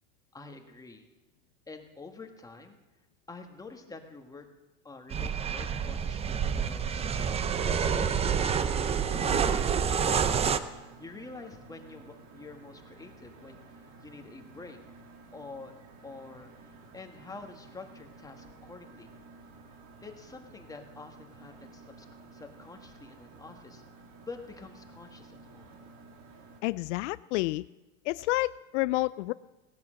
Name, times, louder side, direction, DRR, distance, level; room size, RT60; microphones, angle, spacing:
voice 1, 0.3-1.1 1.7-2.8 3.3-4.5 4.8-7.3 7.5-10.5 11.0-13.6 14.0-14.8 15.3-15.7 16.0-16.5 16.9-19.1 20.0-22.1 22.3-23.8 24.2-25.7, left 3 dB, 10° left, 4 dB, 1.5 m, -47 dB
sound 1, 5.1-10.6, right 7 dB, 15° right, 0.6 m, -28 dB
sound 2, 6.9-26.6, right 3 dB, 50° right, 2.6 m, -53 dB
voice 2, 26.6-27.6 28.1-29.3, left 20 dB, 70° left, 17 dB, 0.5 m, -29 dB
17.5 x 10.5 x 7.6 m, 1.1 s
supercardioid pair, 135°, 38 cm